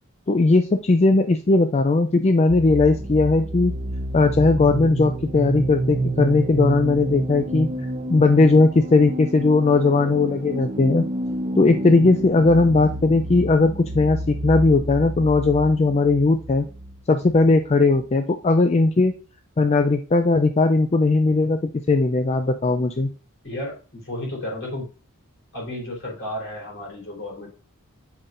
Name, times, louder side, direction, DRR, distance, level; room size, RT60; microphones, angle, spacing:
voice 1, 0.3-3.8 4.1-7.7 8.1-11.1 11.6-16.7 17.1-19.1 19.6-23.1, left 3 dB, 30° left, 7 dB, 0.4 m, -18 dB
sound 1, 2.5-18.0, right 1 dB, 25° right, 0.7 m, -29 dB
voice 2, 23.4-24.9 25.5-27.5, left 1 dB, 60° left, -1 dB, 3.8 m, -32 dB
8.1 x 5.8 x 2.6 m, 0.34 s
head